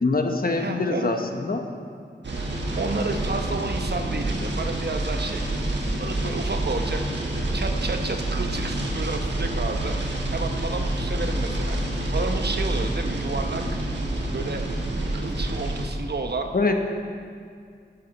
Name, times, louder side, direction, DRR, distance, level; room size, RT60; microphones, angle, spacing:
voice 1, 0.0-1.6 16.5-16.8, left 3 dB, 55° left, 4 dB, 1.1 m, -24 dB
voice 2, 0.6-1.2 2.8-5.5 6.0-7.0 7.5-10.0 10.3-11.8 12.1-13.6 14.3-14.6 15.1-16.5, right 3 dB, 65° right, 5 dB, 0.9 m, -31 dB
sound 1, 2.2-15.9, right 1 dB, 85° right, 1.4 m, -27 dB
12.0 x 10.5 x 4.2 m, 2.2 s
wide cardioid pair, 55°, 18 cm